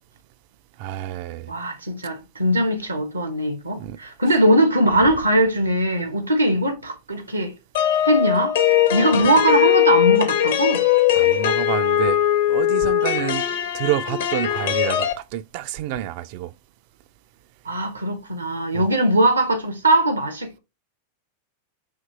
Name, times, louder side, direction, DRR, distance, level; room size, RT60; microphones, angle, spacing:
voice 1, 0.8-1.5 3.7-4.0 11.1-12.2 12.5-13.4 13.7-16.5 18.7-18.8, right 12 dB, 45° right, 0.3 m, -28 dB
voice 2, 1.5-7.5 8.0-8.6 8.9-10.8 17.6-20.6, right 1 dB, 80° right, 0.9 m, -20 dB
sound 1, 7.7-15.1, left 12 dB, 60° left, 0.7 m, -20 dB
5.0 x 2.9 x 2.6 m
figure-of-eight pair, 90°, 0 cm